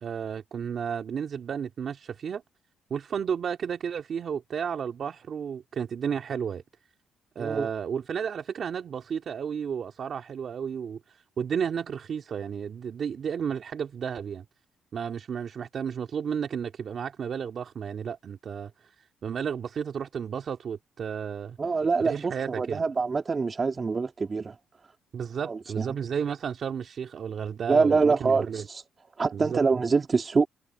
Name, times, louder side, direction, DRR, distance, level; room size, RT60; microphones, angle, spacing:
voice 1, 0.0-2.4 2.9-6.6 7.4-14.5 14.9-21.6 22.0-22.8 25.1-28.7 29.3-29.6, right 7 dB, 55° right, 2.3 m, -32 dB
voice 2, 7.4-7.7 21.6-24.6 25.4-25.9 27.7-28.8 29.2-30.5, right 4 dB, 35° right, 2.7 m, -25 dB
cardioid pair, 90°, 0 cm